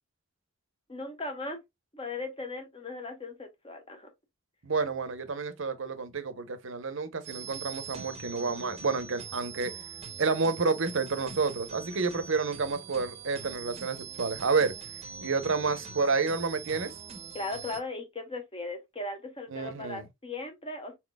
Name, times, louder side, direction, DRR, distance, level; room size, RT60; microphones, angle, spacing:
voice 1, 0.9-1.6 1.9-4.1 17.3-21.0, left 2 dB, 25° left, 1.1 m, -38 dB
voice 2, 4.6-9.7 10.2-14.7 15.2-16.9 19.5-20.0, right 4 dB, 60° right, 0.8 m, -29 dB
sound 1, 7.2-17.8, right 6 dB, 30° right, 0.9 m, -43 dB
4.3 x 4.0 x 2.2 m
head